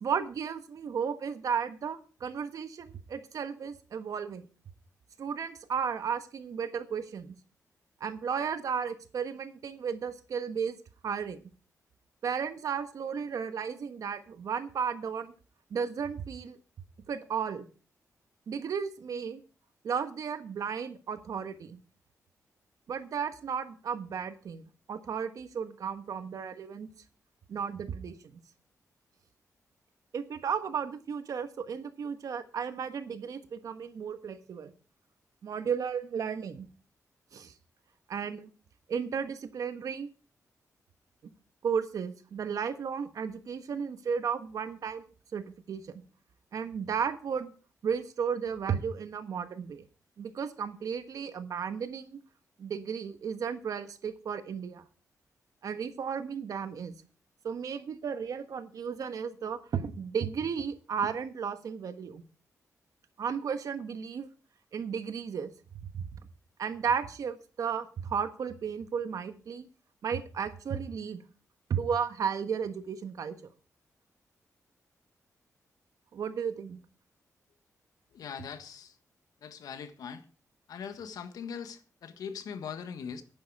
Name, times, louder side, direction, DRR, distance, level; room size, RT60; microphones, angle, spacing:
voice 1, 0.0-4.4 5.2-7.3 8.0-10.8 11.0-11.4 12.2-15.3 15.7-16.6 17.1-17.6 18.5-19.4 19.8-21.8 22.9-24.6 24.9-26.9 27.5-28.4 30.1-34.7 35.4-36.7 37.3-37.5 38.1-38.5 38.9-40.1 41.6-45.1 45.3-46.0 46.5-47.5 47.8-49.8 50.2-52.2 52.6-54.8 55.6-56.9 57.4-62.2 63.2-64.3 64.7-65.5 65.9-66.1 66.6-69.7 70.0-71.2 71.7-73.4 76.1-76.8, right 7 dB, 70° right, 1.3 m, -34 dB
voice 2, 78.1-78.9 79.4-80.2 80.7-83.2, left 7 dB, 85° left, 1.5 m, -41 dB
11.0 x 9.5 x 4.8 m
cardioid pair, 105°, 6 cm